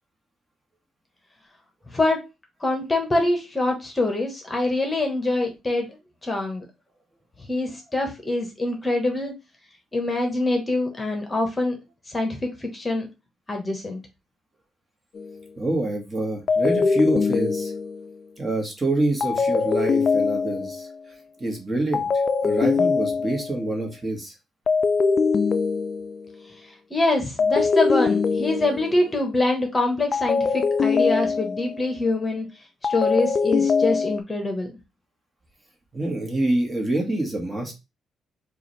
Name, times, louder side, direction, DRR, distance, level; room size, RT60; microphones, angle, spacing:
voice 1, 2.6-5.9 6.2-6.6 7.5-9.3 9.9-11.8 12.1-13.1 13.5-14.0 26.9-32.5 32.9-34.7, left 2 dB, 20° left, 3 dB, 1.1 m, -24 dB
sound 1, 15.1-15.4 16.5-18.2 19.2-20.9 21.9-23.6 24.7-26.3 27.4-29.1 30.1-31.8 32.8-34.2, left 5 dB, 45° left, 0.4 m, -22 dB
voice 2, 15.6-17.7 18.4-20.9 21.4-22.1 22.4-24.3 35.9-37.7, right 2 dB, 25° right, 2 dB, 1.5 m, -26 dB
4.7 x 2.5 x 3.2 m, 0.25 s
cardioid pair, 90°, 0 cm